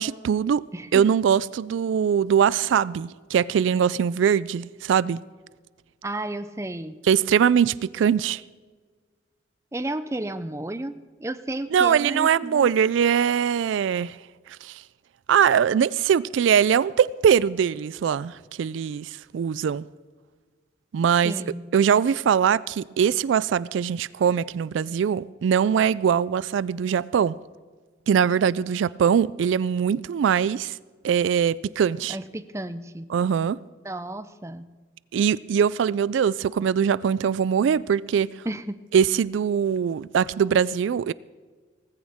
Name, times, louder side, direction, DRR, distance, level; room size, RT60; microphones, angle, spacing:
voice 1, 0.0-0.7 0.9-5.2 7.0-8.4 11.7-14.2 14.6-14.8 15.3-19.9 20.9-21.3 21.7-27.3 28.1-30.8 31.0-32.2 33.1-33.6 35.1-38.3 38.9-41.1, right 7 dB, 85° right, 0.3 m, -22 dB
voice 2, 0.7-1.0 6.0-7.0 9.7-12.7 21.2-21.6 32.1-33.1 33.8-34.7 38.5-38.8, right 1 dB, 15° right, 0.5 m, -32 dB
18.5 x 15.0 x 3.5 m
head